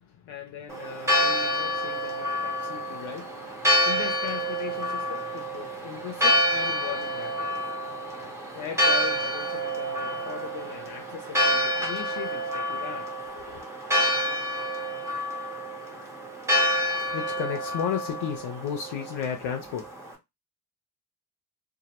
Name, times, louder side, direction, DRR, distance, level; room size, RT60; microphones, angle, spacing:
voice 1, 0.0-13.6 17.1-19.9, left 8 dB, 75° left, 0.7 m, -37 dB
Church bell, 0.7-20.1, equal, 5° right, 0.9 m, -28 dB
2.3 x 2.0 x 2.9 m
supercardioid pair, 60°, 50 cm